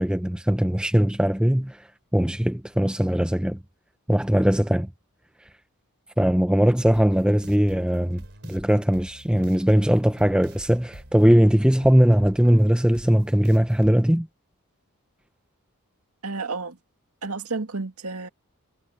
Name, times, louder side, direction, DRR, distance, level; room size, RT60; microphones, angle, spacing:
voice 1, 0.0-1.8 2.1-3.6 4.1-4.9 6.2-8.2 8.5-14.3, equal, 5° right, 0.6 m, -20 dB
sound 1, 6.9-13.9, right 1 dB, 55° right, 3.8 m, -45 dB
voice 2, 16.2-16.8 17.2-18.3, right 3 dB, 75° right, 2.0 m, -31 dB
head